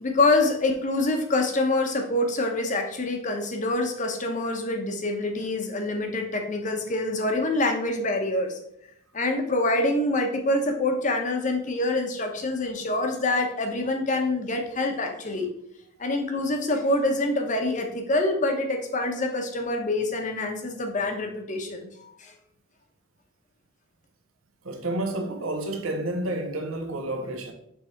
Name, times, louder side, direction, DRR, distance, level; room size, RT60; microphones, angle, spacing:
voice 1, 0.0-8.6 9.1-15.5 16.0-22.3, left 2 dB, 35° left, 0.8 m, -26 dB
voice 2, 24.6-27.5, right 1 dB, 80° right, 1.0 m, -30 dB
6.3 x 3.4 x 4.4 m
head